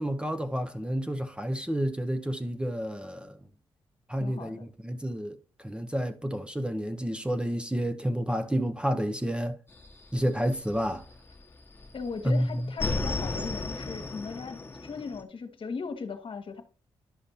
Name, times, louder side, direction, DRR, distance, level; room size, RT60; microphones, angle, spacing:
voice 1, 0.0-3.4 4.1-9.6 10.1-11.0 12.2-12.7, equal, 10° right, 0.7 m, -30 dB
voice 2, 4.2-4.7 11.9-16.6, left 5 dB, 55° left, 1.2 m, -38 dB
sound 1, 9.7-11.4 11.7-15.2, left 2 dB, 20° left, 1.3 m, -34 dB
11.5 x 5.1 x 2.7 m
supercardioid pair, 50°, 11 cm